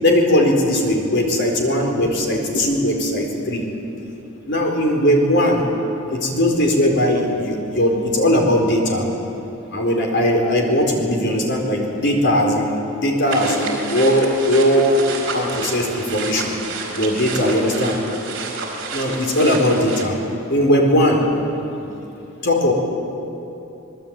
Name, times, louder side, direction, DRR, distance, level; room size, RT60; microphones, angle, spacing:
voice 1, 0.0-3.6 4.5-5.6 6.1-9.0 9.7-15.0 15.3-16.6 17.0-18.0 18.9-20.1 20.5-21.2 21.8-21.9 22.4-22.7, left 1 dB, 55° left, 1 dB, 4.5 m, -19 dB
sound 1, 13.3-20.0, right 3 dB, 60° right, 4.8 m, -29 dB
26.5 x 20.5 x 9.0 m, 3.0 s
head